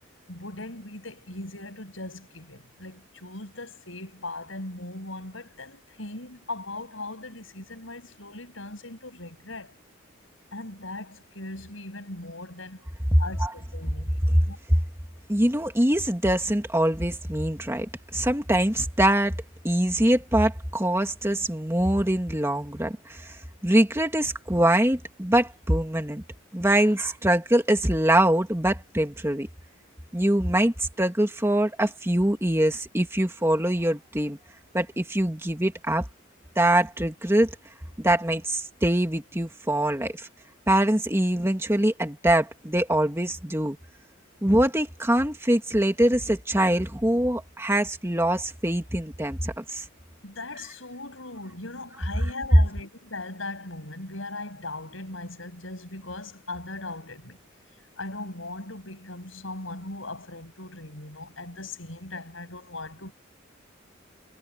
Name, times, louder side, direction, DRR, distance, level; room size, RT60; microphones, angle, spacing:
voice 1, 0.3-9.7 10.5-12.8 13.2-14.6 26.8-26.9 50.2-57.4 58.0-63.1, left 2 dB, 75° left, 7.4 m, -39 dB
voice 2, 13.1-13.5 14.3-14.4 14.7-14.8 15.3-19.4 19.6-26.2 26.5-29.5 30.1-34.4 34.7-36.1 36.6-37.5 38.0-40.3 40.7-43.8 44.4-49.9, right 1 dB, 15° right, 2.0 m, -23 dB
head